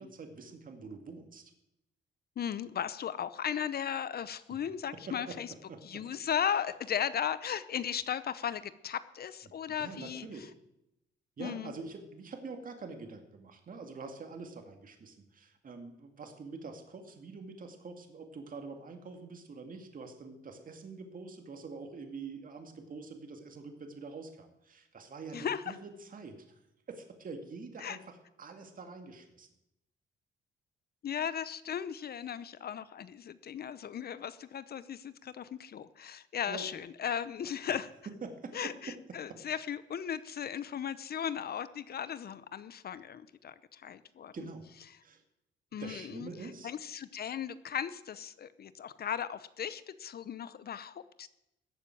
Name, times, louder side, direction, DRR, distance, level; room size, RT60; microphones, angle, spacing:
voice 1, 0.0-1.5 4.5-4.6 4.9-5.4 5.7-6.0 9.8-10.5 11.4-26.6 26.9-29.5 36.5-36.7 38.2-39.0 39.3-39.4 44.3-44.7 45.0-45.2 45.7-46.7, right 4 dB, 45° right, 5 dB, 2.2 m, -45 dB
voice 2, 2.4-5.5 5.8-10.3 11.4-11.7 25.3-25.8 27.8-28.0 31.0-37.9 38.5-44.3 45.7-46.3 46.6-51.3, left 8 dB, 50° left, 15 dB, 0.8 m, -36 dB
14.5 x 7.3 x 9.1 m, 0.86 s
cardioid pair, 90°, 20 cm